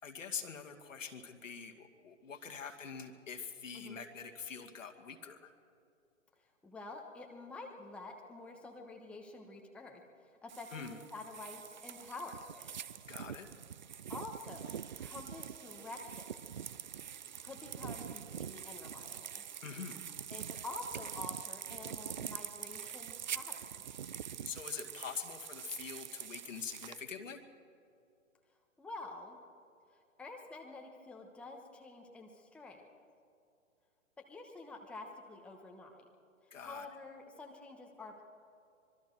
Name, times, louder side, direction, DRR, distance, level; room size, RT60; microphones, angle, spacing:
voice 1, 0.0-5.5 10.7-11.0 13.1-13.5 19.6-20.1 24.1-27.5 36.5-36.9, left 6 dB, 65° left, 4 dB, 2.3 m, -44 dB
voice 2, 6.6-12.8 14.1-16.5 17.4-19.4 20.3-23.8 28.8-29.4 30.2-32.9 34.3-36.1 36.6-38.2, left 3 dB, 5° left, 1 dB, 1.1 m, -48 dB
sound 1, 10.5-27.0, right 8 dB, 35° right, 0.4 m, -45 dB
25.0 x 22.5 x 4.7 m, 2.5 s
figure-of-eight pair, 125°, 41 cm